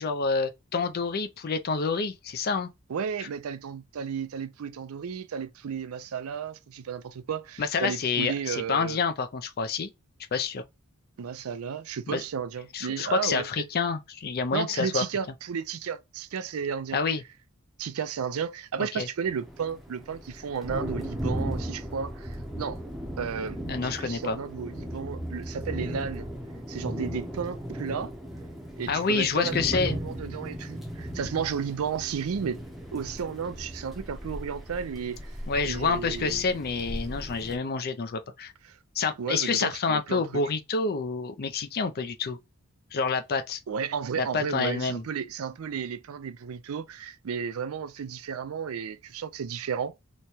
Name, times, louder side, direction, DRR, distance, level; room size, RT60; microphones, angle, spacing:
voice 1, 0.0-2.7 7.6-9.9 10.3-10.6 12.1-12.2 12.7-15.0 16.9-17.2 18.8-19.1 23.7-24.4 28.9-30.0 35.5-38.5 39.0-42.4 42.9-43.6 44.2-45.0, left 4 dB, 45° left, 0.5 m, -28 dB
voice 2, 2.9-9.0 11.2-13.7 14.5-17.0 17.8-22.8 23.2-26.3 26.7-28.1 28.8-32.6 32.9-35.3 35.6-36.4 38.6-38.8 39.2-40.4 43.7-49.9, right 7 dB, 80° right, 0.4 m, -33 dB
sound 1, 19.2-37.6, equal, ahead, 0.7 m, -37 dB
3.1 x 2.2 x 4.0 m
head